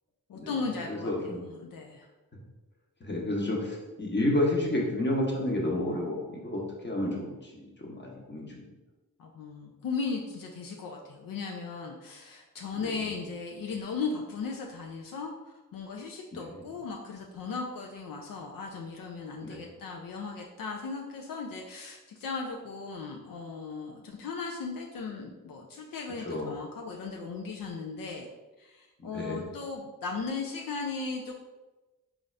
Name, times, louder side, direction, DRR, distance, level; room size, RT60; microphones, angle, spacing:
voice 1, 0.3-2.1 9.2-28.3 28.6-31.3, left 4 dB, 75° left, 1 dB, 0.5 m, -37 dB
voice 2, 0.9-1.4 3.0-7.3 7.8-8.6 12.8-13.0 16.3-16.6 19.4-19.6 26.3-26.5 29.0-29.4, left 1 dB, 35° left, -1 dB, 1.0 m, -30 dB
3.8 x 2.5 x 3.2 m, 1.1 s
cardioid pair, 50°, 34 cm